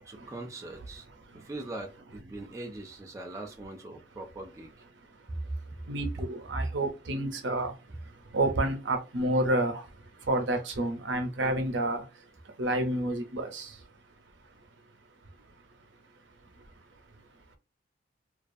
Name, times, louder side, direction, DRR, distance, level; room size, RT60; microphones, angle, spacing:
voice 1, 0.1-1.1 1.3-4.7, right 2 dB, 15° right, 0.3 m, -42 dB
voice 2, 0.8-1.5 2.4-2.6 3.9-4.1 4.9-14.3 14.6-14.7 15.3-15.6 16.5-17.6, right 1 dB, 80° right, 0.6 m, -32 dB
2.4 x 2.3 x 2.5 m
head